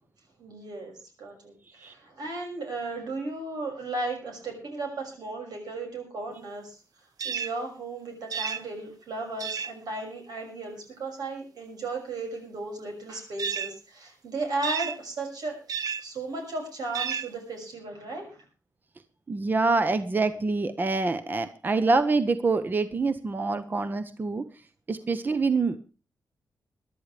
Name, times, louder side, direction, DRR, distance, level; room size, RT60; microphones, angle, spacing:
voice 1, 0.4-15.6 16.0-18.4, right 2 dB, 90° right, 3 dB, 6.2 m, -35 dB
sound 1, 7.2-7.6 8.3-8.6 9.4-9.7 13.4-13.7 14.6-15.0 15.7-16.0 16.9-17.3, right 7 dB, 70° right, 0.8 m, -31 dB
voice 2, 19.3-24.5 24.9-25.8, right 3 dB, 30° right, 11 dB, 0.8 m, -26 dB
22.5 x 12.0 x 3.3 m, 0.33 s
wide cardioid pair, 125°, 7 cm